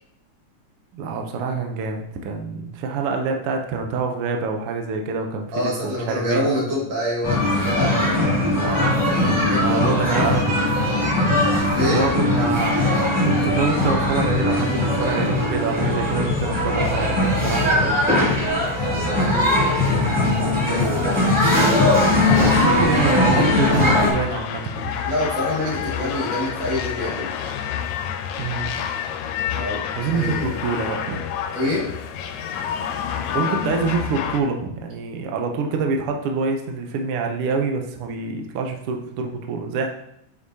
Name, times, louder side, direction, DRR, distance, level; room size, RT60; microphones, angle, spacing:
voice 1, 0.9-6.4 8.6-8.9 9.6-10.5 11.8-12.8 13.2-18.5 21.6-21.7 22.2-25.0 28.4-28.8 29.9-31.3 33.3-39.9, right 4 dB, 80° right, 3 dB, 1.2 m, -26 dB
voice 2, 5.5-8.1 9.3-10.0 11.7-12.0 19.2-19.6 20.6-21.2 25.1-27.3 29.6-30.5 31.5-31.9, left 1 dB, 60° right, -5 dB, 3.1 m, -26 dB
sound 1, 7.2-24.1, left 1 dB, 5° right, 2.1 m, -20 dB
sound 2, 22.0-34.4, left 8 dB, 80° left, 1.9 m, -29 dB
8.1 x 5.3 x 2.8 m, 0.76 s
omnidirectional pair, 3.4 m